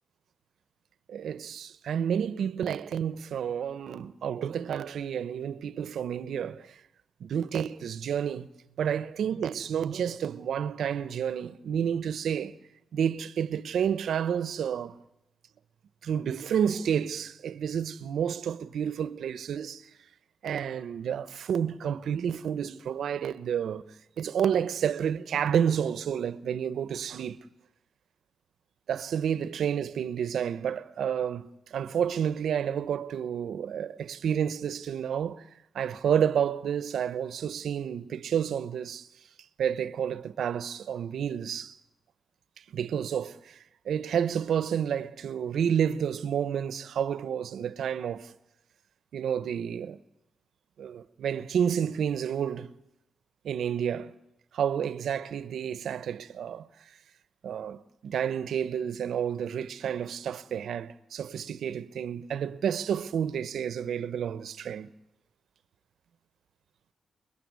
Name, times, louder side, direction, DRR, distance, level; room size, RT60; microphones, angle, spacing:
voice 1, 1.1-6.8 7.2-8.5 8.8-12.6 12.9-15.0 16.0-19.9 20.4-27.4 28.9-35.5 35.7-39.1 39.6-41.8 42.7-43.6 43.8-48.3 49.1-50.0 50.8-52.7 53.4-54.1 54.5-56.7 57.4-64.9, right 8 dB, 80° right, 1.0 m, -30 dB
29.0 x 21.5 x 9.6 m
wide cardioid pair, 170°, 0 cm